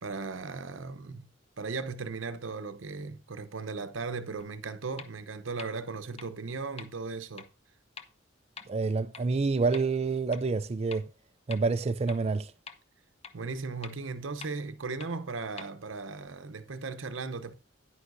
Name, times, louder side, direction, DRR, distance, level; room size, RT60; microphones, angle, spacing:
voice 1, 0.0-1.3 1.6-7.5 13.3-17.5, right 4 dB, 85° right, 0.8 m, -37 dB
sound 1, 4.4-4.5 5.0-5.1 5.6-5.7 6.2-6.3 6.8-6.9 7.4-7.5 8.0-8.1 8.6-8.7 9.1-9.2 9.7-9.8 10.3-10.4 10.9-11.0 11.5-11.6 12.1-12.2 12.7-12.8 13.2-13.3 13.8-13.9 14.4-14.5 15.0-15.1 15.6-15.7, left 6 dB, 35° left, 0.8 m, -43 dB
voice 2, 8.7-11.1 11.5-12.5, right 4 dB, 35° right, 0.4 m, -28 dB
9.9 x 9.5 x 2.6 m
head